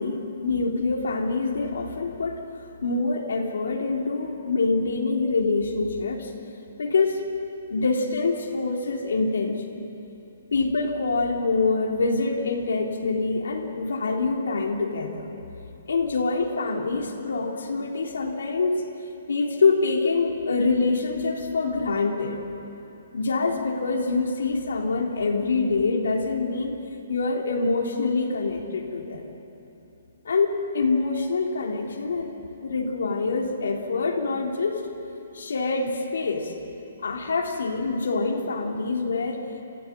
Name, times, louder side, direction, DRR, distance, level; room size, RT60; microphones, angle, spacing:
voice 1, 0.0-2.4 2.8-6.3 6.8-7.2 7.7-9.8 10.5-15.3 15.9-18.8 19.3-22.4 23.1-26.7 27.1-29.3 30.3-32.3 32.6-34.8 35.3-36.5 37.0-39.5, left 3 dB, 90° left, 0 dB, 3.6 m, -25 dB
30.0 x 15.5 x 9.0 m, 2.9 s
hypercardioid pair, 180°, 0 cm